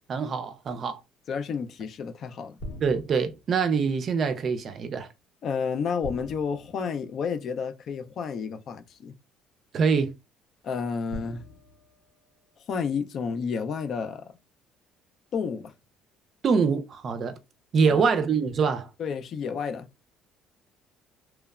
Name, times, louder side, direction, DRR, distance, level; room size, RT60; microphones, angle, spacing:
voice 1, 0.1-1.0 2.8-5.1 9.7-10.1 16.4-17.4 17.7-18.9, right 5 dB, 45° right, 0.4 m, -24 dB
voice 2, 1.3-2.5 5.4-9.1 10.6-11.4 12.7-14.3 15.3-15.7 17.9-18.0 19.0-19.9, left 6 dB, 55° left, 0.4 m, -31 dB
sound 1, 2.6-3.6 6.0-7.7 8.9-9.0 11.1-12.8, left 1 dB, 70° left, 0.8 m, -43 dB
3.0 x 2.0 x 2.3 m
cardioid pair, 95°, 0 cm